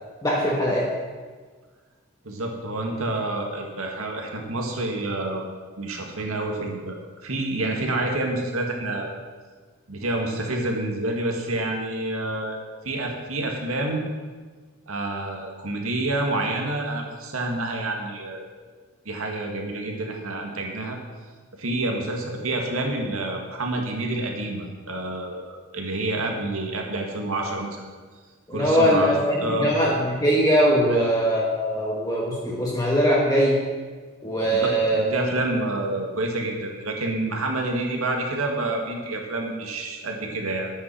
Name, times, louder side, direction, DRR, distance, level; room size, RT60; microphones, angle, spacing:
voice 1, 0.2-0.9 28.5-33.6 34.2-35.1, equal, 20° left, -4 dB, 1.4 m, -21 dB
voice 2, 2.2-5.5 5.8-9.1 9.9-12.6 12.8-14.1 14.9-18.5 19.1-21.0 21.6-27.9 28.5-29.1 29.4-29.7 30.9-31.1 34.5-40.7, right 2 dB, 90° right, 1 dB, 2.0 m, -28 dB
10.0 x 8.9 x 6.1 m, 1.5 s
head